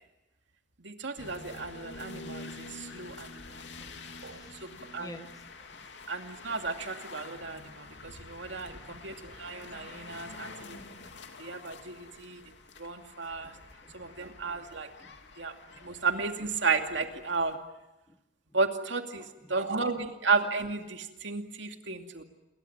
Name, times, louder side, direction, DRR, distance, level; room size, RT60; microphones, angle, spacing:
voice 1, 0.8-3.6 4.2-5.2 6.1-10.8 11.4-12.4 12.8-13.5 13.9-14.9 15.4-15.5 15.8-17.6 18.5-22.2, right 4 dB, 75° right, 5 dB, 2.5 m, -33 dB
sound 1, 1.2-17.6, left 3 dB, 70° left, 2.9 m, -47 dB
voice 2, 3.6-3.9 4.3-4.6 5.0-5.4 5.7-5.9 8.6-9.1 9.4-9.5 10.4-10.5 13.4-14.1 14.5-14.7 15.0-15.3 15.7-15.9 18.1-18.2 19.1-19.6, left 1 dB, 20° left, 9 dB, 1.4 m, -53 dB
28.5 x 22.5 x 8.8 m, 0.97 s
head